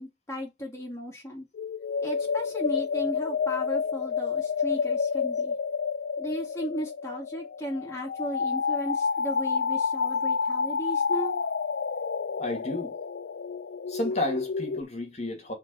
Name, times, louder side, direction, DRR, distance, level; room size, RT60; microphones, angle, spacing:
voice 1, 0.0-1.5 2.0-5.6 6.2-11.4, equal, 15° left, 2.2 m, -35 dB
sound 1, 1.5-14.8, left 5 dB, 70° left, 0.4 m, -29 dB
voice 2, 12.4-13.0 13.9-15.5, left 2 dB, 40° left, 2.3 m, -31 dB
5.1 x 4.1 x 5.3 m
head